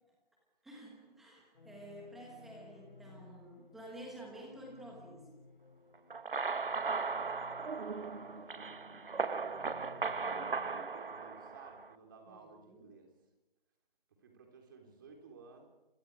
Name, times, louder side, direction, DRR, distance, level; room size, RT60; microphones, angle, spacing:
voice 1, 0.6-5.4 12.3-12.9, right 1 dB, ahead, -2 dB, 1.3 m, -51 dB
sound 1, 1.5-10.9, left 3 dB, 65° left, 5.4 m, -59 dB
sound 2, 6.1-11.9, right 4 dB, 60° right, 1.4 m, -37 dB
voice 2, 7.2-8.5 9.9-13.1 14.2-15.7, right 4 dB, 20° right, 2 dB, 3.8 m, -56 dB
29.0 x 27.5 x 5.0 m, 0.98 s
figure-of-eight pair, 170°, 30 cm